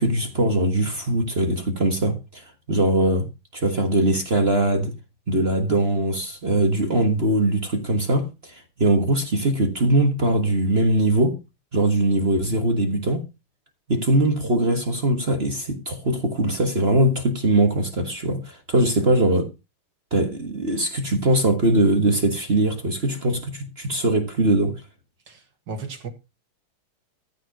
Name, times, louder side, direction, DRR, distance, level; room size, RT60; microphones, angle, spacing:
voice 1, 0.0-4.9 5.3-11.4 11.7-13.2 13.9-19.5 20.1-24.8, right 1 dB, 30° right, 1.5 m, -21 dB
voice 2, 25.3-26.1, right 4 dB, 55° right, 2.2 m, -35 dB
14.0 x 4.8 x 6.0 m
omnidirectional pair, 2.4 m